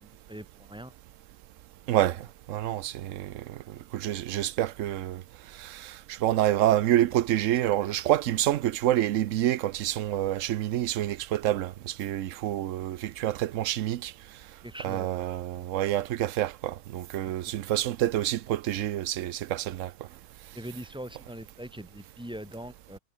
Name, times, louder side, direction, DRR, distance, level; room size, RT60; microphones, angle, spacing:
voice 1, 0.0-0.9 1.9-2.2 14.6-15.1 17.2-17.3 20.5-23.0, right 1 dB, 5° right, 3.1 m, -42 dB
voice 2, 2.5-5.2 5.6-14.1 14.8-19.9, right 13 dB, 85° right, 1.0 m, -27 dB
omnidirectional pair, 1.3 m